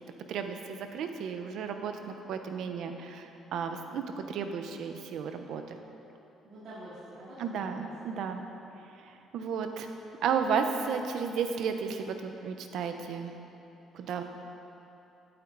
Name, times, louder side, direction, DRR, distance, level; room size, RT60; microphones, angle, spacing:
voice 1, 0.3-5.8 7.4-8.5 9.0-9.9 10.2-13.3 13.9-14.2, right 6 dB, 70° right, 6 dB, 1.0 m, -33 dB
voice 2, 6.4-8.3, right 1 dB, 55° right, -10 dB, 2.9 m, -47 dB
16.5 x 9.0 x 4.1 m, 2.9 s
cardioid pair, 145°, 0 cm